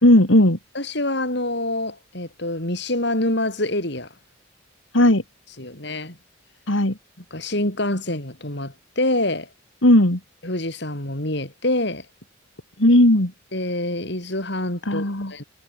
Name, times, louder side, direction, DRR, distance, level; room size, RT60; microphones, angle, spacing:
voice 1, 0.0-0.6 4.9-5.2 6.7-6.9 9.8-10.2 12.8-13.3 14.8-15.3, left 1 dB, 75° left, 3.3 m, -15 dB
voice 2, 0.7-4.1 5.6-6.2 7.3-9.5 10.4-12.0 13.5-15.4, left 1 dB, 55° left, 6.2 m, -26 dB
head